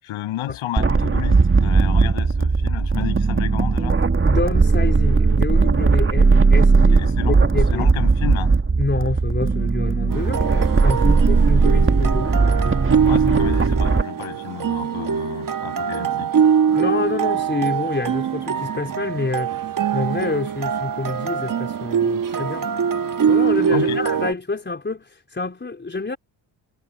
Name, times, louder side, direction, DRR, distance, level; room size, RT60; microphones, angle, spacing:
voice 1, 0.0-4.0 6.9-8.6 13.1-16.4 23.7-24.0, left 13 dB, 80° left, 7.5 m, -31 dB
sound 1, 0.8-14.0, right 4 dB, 25° right, 2.1 m, -17 dB
voice 2, 4.2-7.9 8.8-12.3 16.7-19.6 19.9-22.7 23.3-26.2, left 3 dB, 25° left, 4.3 m, -27 dB
sound 2, 10.1-24.3, right 7 dB, 45° right, 1.3 m, -23 dB
supercardioid pair, 70°, 47 cm